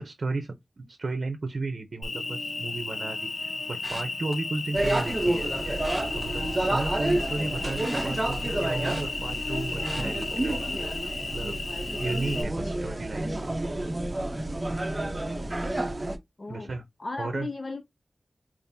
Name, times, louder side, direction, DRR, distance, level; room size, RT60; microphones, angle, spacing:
voice 1, 0.0-5.5 6.1-10.7 11.3-11.6 12.0-13.6 16.5-16.8 17.2-17.5, right 3 dB, 70° right, 0.7 m, -34 dB
Cricket, 2.0-12.4, left 3 dB, 80° left, 0.7 m, -34 dB
sound 1, 3.8-4.3 4.8-5.0 5.7-7.0 7.3-9.5 9.8-10.2 10.7-11.0 11.3-11.4, right 1 dB, 10° right, 2.5 m, -42 dB
sound 2, 4.7-16.2, right 1 dB, 30° right, 0.7 m, -30 dB
voice 2, 7.1-7.5 12.6-12.7 16.4-17.8, left 3 dB, 45° left, 0.4 m, -37 dB
5.2 x 2.6 x 2.7 m
wide cardioid pair, 95°, 0 cm